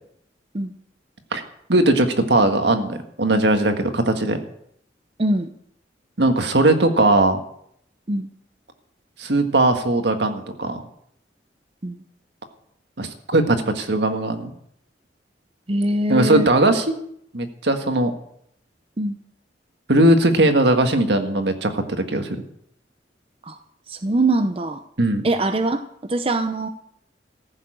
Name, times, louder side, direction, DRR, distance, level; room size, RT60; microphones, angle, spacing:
voice 1, 1.7-4.4 6.2-7.4 9.2-10.8 13.0-14.5 16.1-16.9 17.3-18.1 19.9-21.8 22.1-22.4 25.0-25.2, right 2 dB, 70° right, 6 dB, 1.7 m, -19 dB
voice 2, 15.7-16.5 19.0-19.2 23.5-23.6 23.9-24.8 25.2-25.8 26.1-26.7, right 2 dB, 30° right, 8 dB, 0.7 m, -22 dB
15.0 x 7.3 x 8.8 m, 0.71 s
head